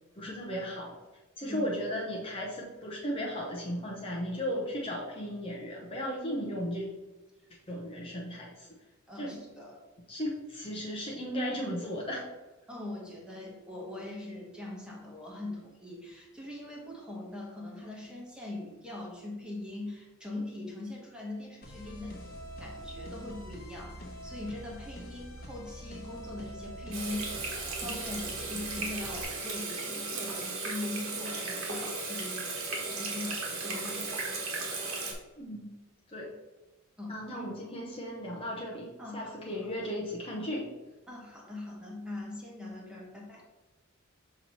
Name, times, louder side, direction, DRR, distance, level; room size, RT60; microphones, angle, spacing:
voice 1, 0.2-1.0 1.4-6.9 7.7-8.7 9.2-9.4 10.1-12.3 35.4-35.8 36.1-36.3 37.1-40.7, equal, 25° left, -3 dB, 0.8 m, -35 dB
voice 2, 9.1-9.8 12.7-22.2 22.6-34.2 37.0-37.2 39.0-39.3 41.1-43.4, left 2 dB, 5° right, -3 dB, 1.4 m, -41 dB
sound 1, 21.6-29.2, equal, 45° left, 1.2 m, -45 dB
Water tap faucet / Sink (filling or washing), 26.9-35.1, right 3 dB, 85° right, 1.5 m, -36 dB
6.5 x 3.1 x 5.4 m, 1.1 s
head